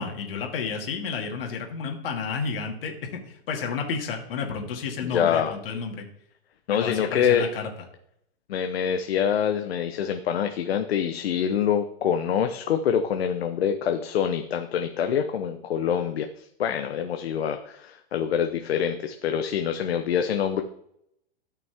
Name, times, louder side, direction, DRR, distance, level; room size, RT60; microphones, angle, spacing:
voice 1, 0.0-6.1 6.7-7.7, left 5 dB, 65° left, 2 dB, 2.3 m, -31 dB
voice 2, 5.0-5.6 6.7-7.5 8.5-20.6, left 8 dB, 85° left, 6 dB, 0.9 m, -25 dB
13.0 x 5.9 x 3.5 m, 0.74 s
hypercardioid pair, 155°, 30 cm